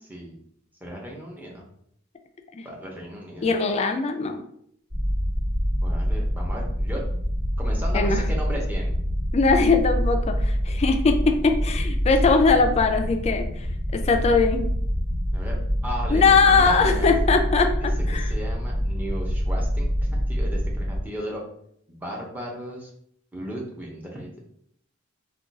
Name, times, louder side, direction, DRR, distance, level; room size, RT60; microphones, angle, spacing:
voice 1, 0.0-0.4 0.8-1.7 2.6-3.6 5.8-7.0 7.6-9.0 12.2-12.4 15.3-15.6 15.8-17.2 18.1-21.4 21.9-22.9 23.3-24.4, equal, 10° right, -2 dB, 0.6 m, -35 dB
voice 2, 3.4-4.4 7.9-8.2 9.3-13.7 13.9-14.6 16.1-18.2, left 4 dB, 30° left, 5 dB, 0.3 m, -21 dB
sound 1, 4.9-21.0, equal, 80° right, 1.5 m, -25 dB
2.4 x 2.3 x 3.9 m, 0.70 s
head